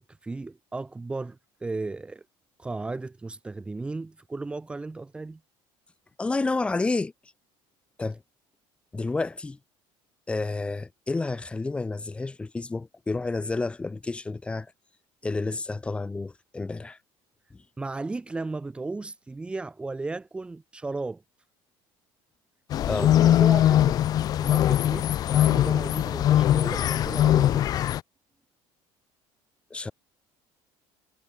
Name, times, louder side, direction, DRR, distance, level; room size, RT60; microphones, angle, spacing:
voice 1, 0.0-2.2 2.6-5.4 17.8-21.2 22.9-24.0 24.4-27.9, right 3 dB, 10° right, 2.9 m, -35 dB
voice 2, 6.2-7.1 8.0-8.2 8.9-9.6 10.3-14.7 15.2-17.0 17.5-17.6 22.9-23.1 29.7-29.9, left 3 dB, 10° left, 4.2 m, -30 dB
sound 1, 22.7-28.0, left 12 dB, 35° left, 1.6 m, -21 dB
cardioid pair, 170°, 11 cm